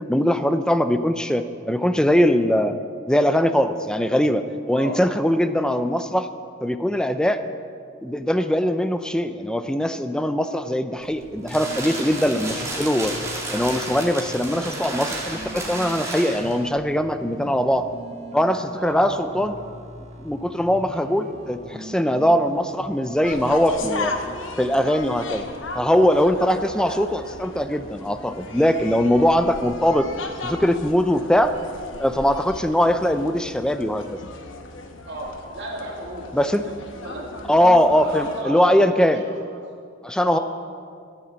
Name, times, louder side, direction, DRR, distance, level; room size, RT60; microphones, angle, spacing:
voice 1, 0.1-2.7 3.1-6.3 6.6-7.4 8.0-13.1 13.5-17.9 18.3-19.5 20.2-25.4 25.7-30.1 30.4-31.6 32.0-34.2 36.3-36.6 37.5-39.2 40.0-40.4, equal, 5° left, 10 dB, 0.5 m, -21 dB
sound 1, 11.0-16.7, right 2 dB, 15° right, 2.3 m, -32 dB
sound 2, 11.3-24.1, equal, 35° right, 1.3 m, -41 dB
voice 2, 18.8-19.2 20.9-21.1 26.5-26.9 35.1-36.3 36.6-37.3 37.8-39.6 40.2-40.4, right 1 dB, 60° right, -2 dB, 2.7 m, -34 dB
sound 3, 23.2-38.4, left 3 dB, 75° left, 1.1 m, -36 dB
14.5 x 6.7 x 7.5 m, 2.2 s
head